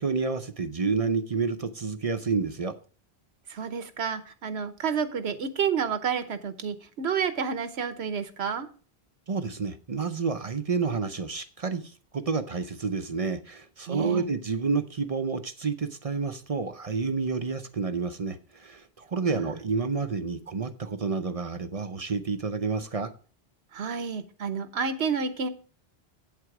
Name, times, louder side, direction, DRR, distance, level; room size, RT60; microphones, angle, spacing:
voice 1, 0.0-2.7 9.3-11.8 12.1-23.1, right 4 dB, 40° right, 0.6 m, -29 dB
voice 2, 3.5-8.7 13.9-14.3 19.3-19.6 23.7-25.5, right 6 dB, 80° right, 1.2 m, -30 dB
8.4 x 8.0 x 4.8 m
omnidirectional pair, 1.1 m